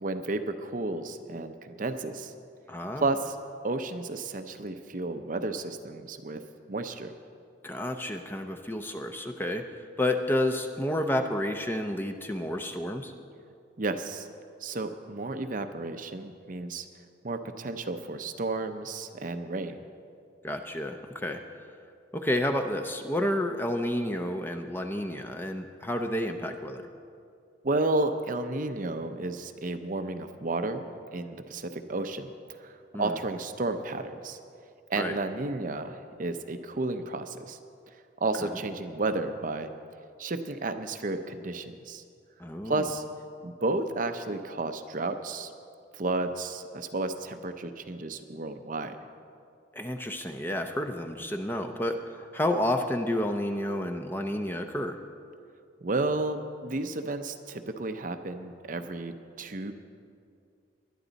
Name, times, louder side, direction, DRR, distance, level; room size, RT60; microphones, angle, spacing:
voice 1, 0.0-2.3 3.0-3.4 3.6-6.4 6.7-7.1 13.8-14.3 14.6-16.9 17.2-19.8 27.6-34.4 34.9-37.6 38.2-39.7 40.2-42.0 42.6-43.0 43.4-45.5 45.9-49.0 55.8-59.7, right 2 dB, 45° right, 8 dB, 0.7 m, -32 dB
voice 2, 2.7-3.1 7.6-9.6 10.0-13.1 20.4-21.4 22.1-26.9 32.9-33.2 35.0-35.2 38.4-38.6 42.4-42.9 49.7-55.0, left 1 dB, 10° left, 5 dB, 0.6 m, -30 dB
20.5 x 11.5 x 4.1 m, 2.4 s
head